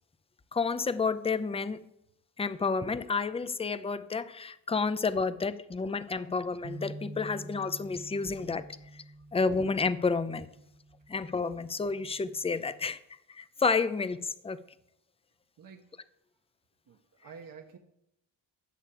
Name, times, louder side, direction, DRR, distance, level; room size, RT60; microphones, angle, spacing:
voice 1, 0.5-1.8 2.4-8.7 9.3-10.5 11.1-13.0 13.3-14.6, left 4 dB, 15° left, 14 dB, 0.5 m, -30 dB
sound 1, 6.6-12.9, right 2 dB, 30° right, 0.7 m, -48 dB
voice 2, 15.6-15.9 16.9-17.8, right 6 dB, 50° right, 3 dB, 1.2 m, -49 dB
12.0 x 6.4 x 8.4 m, 0.82 s
cardioid pair, 115°, 43 cm